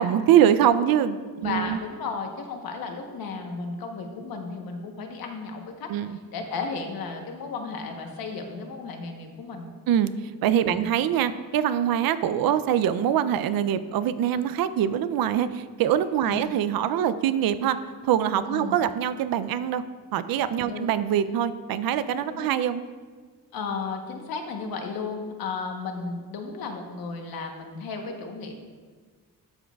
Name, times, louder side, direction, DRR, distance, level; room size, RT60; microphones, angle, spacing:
voice 1, 0.0-1.8 5.9-6.2 9.9-10.1 10.4-17.8 18.0-19.8 20.1-22.8, right 10 dB, 80° right, 13 dB, 0.5 m, -23 dB
voice 2, 1.4-9.7 10.7-10.9 16.3-16.5 18.5-18.8 20.6-20.9 22.3-22.5 23.5-28.5, left 4 dB, 85° left, 3 dB, 1.0 m, -34 dB
12.5 x 6.2 x 2.3 m, 1.5 s
wide cardioid pair, 145°, 35 cm